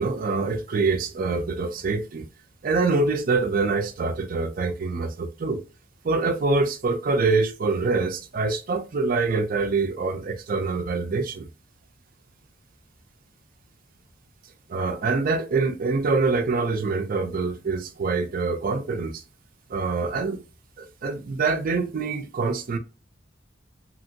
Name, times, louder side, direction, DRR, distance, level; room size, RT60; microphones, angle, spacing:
voice 1, 0.0-2.3 2.6-5.6 6.0-11.5 14.7-19.2 19.7-20.4 20.8-22.8, right 3 dB, 45° right, 0.4 m, -25 dB
2.8 x 2.6 x 2.6 m
head